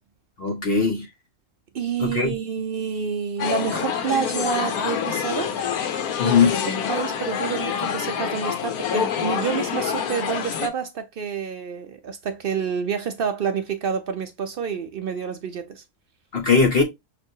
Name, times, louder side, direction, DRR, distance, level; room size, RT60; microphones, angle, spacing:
voice 1, 0.4-1.1 2.0-2.3 6.2-6.5 16.3-16.8, left 5 dB, 50° left, 0.8 m, -19 dB
voice 2, 1.7-5.5 6.2-15.8, right 7 dB, 65° right, 0.5 m, -28 dB
sound 1, 3.4-10.7, left 8 dB, 90° left, 1.2 m, -26 dB
5.9 x 2.5 x 2.6 m
omnidirectional pair, 1.5 m